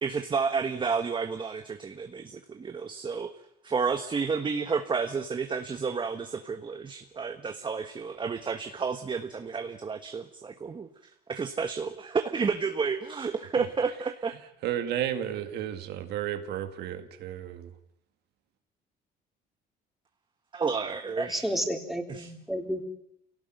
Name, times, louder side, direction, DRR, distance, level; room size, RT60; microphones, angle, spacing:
voice 1, 0.0-3.3 3.6-10.9 11.3-14.4 20.5-21.5 22.1-22.3, right 5 dB, 30° right, 7 dB, 1.3 m, -31 dB
voice 2, 14.6-17.7, right 10 dB, 75° right, 7 dB, 2.1 m, -32 dB
voice 3, 21.2-22.9, equal, ahead, 2 dB, 3.7 m, -31 dB
26.0 x 17.5 x 9.2 m, 0.77 s
cardioid pair, 110°, 17 cm